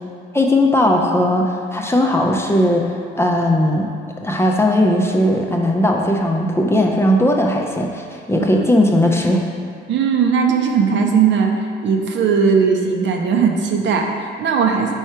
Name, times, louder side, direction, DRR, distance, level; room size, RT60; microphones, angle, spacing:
voice 1, 0.3-3.9 4.2-9.4, left 1 dB, 10° left, 0 dB, 0.6 m, -17 dB
voice 2, 9.9-14.9, right 6 dB, 65° right, 2 dB, 0.7 m, -18 dB
4.7 x 4.5 x 4.4 m, 2.3 s
cardioid pair, 90°, 20 cm